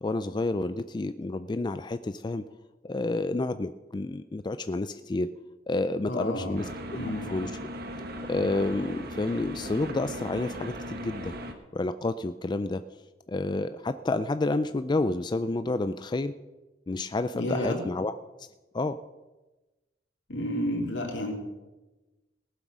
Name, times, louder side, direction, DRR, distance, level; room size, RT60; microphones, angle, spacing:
voice 1, 0.0-2.4 2.8-5.3 5.7-6.7 7.3-7.5 8.3-11.4 11.7-12.8 13.3-16.3 16.9-18.5 18.7-19.0, left 2 dB, 25° left, 11 dB, 0.3 m, -29 dB
voice 2, 6.1-6.6 6.9-7.3 17.4-17.8 20.3-21.3, left 1 dB, 75° left, 1 dB, 3.1 m, -30 dB
sound 1, 6.6-11.5, equal, 55° right, 1.5 m, -38 dB
18.5 x 8.0 x 6.2 m, 1.1 s
head